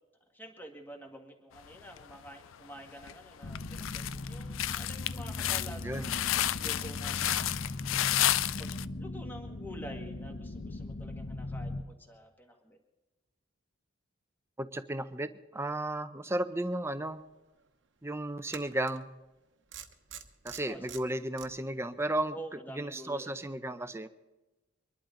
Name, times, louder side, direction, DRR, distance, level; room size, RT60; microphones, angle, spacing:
voice 1, 0.3-7.5 8.6-8.7 9.0-12.8 20.6-21.1 22.3-23.4, right 1 dB, 10° left, 3 dB, 1.7 m, -48 dB
sound 1, 2.0-2.5 3.0-3.1 3.6-8.9, left 13 dB, 75° left, 0.4 m, -31 dB
sound 2, 3.4-11.8, left 2 dB, 55° left, 0.9 m, -39 dB
voice 2, 14.6-17.2 18.0-19.1 20.4-22.3 22.7-24.1, right 1 dB, 15° right, 11 dB, 0.6 m, -34 dB
sound 3, 17.1-17.2 18.5-19.0 19.7-21.5, right 9 dB, 65° right, 1.1 m, -45 dB
24.5 x 11.5 x 3.8 m, 1.1 s
head